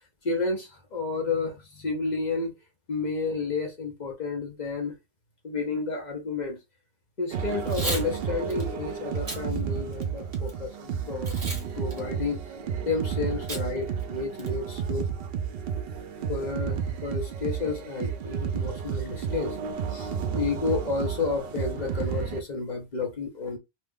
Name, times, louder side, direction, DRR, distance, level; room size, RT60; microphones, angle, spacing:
voice 1, 0.2-2.5 2.9-5.0 5.4-6.6 7.2-11.4 11.8-12.4 12.8-15.1 16.3-19.6 19.9-23.6, left 4 dB, 45° left, 0.8 m, -31 dB
sound 1, 7.3-22.4, right 7 dB, 70° right, 0.8 m, -32 dB
Packing tape duct tape / Tearing, 7.6-8.1 8.5-8.6 9.1-9.4 9.9-10.5 11.2-11.6 11.9-12.0 13.5-13.6 14.0-14.1 14.4-14.7, right 1 dB, 35° right, 1.1 m, -34 dB
2.7 x 2.3 x 3.5 m
omnidirectional pair, 1.1 m